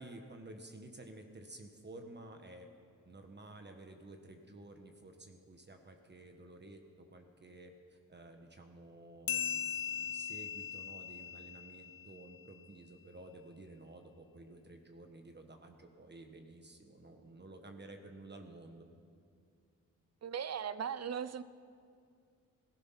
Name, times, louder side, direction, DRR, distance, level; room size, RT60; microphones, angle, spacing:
voice 1, 0.0-2.7 3.0-18.9, right 2 dB, 30° right, 4 dB, 1.4 m, -52 dB
sound 1, 9.3-12.3, left 9 dB, 85° left, 0.7 m, -39 dB
voice 2, 20.2-21.4, right 8 dB, 50° right, 15 dB, 0.6 m, -38 dB
16.5 x 14.5 x 5.8 m, 2.3 s
cardioid pair, 90°, 33 cm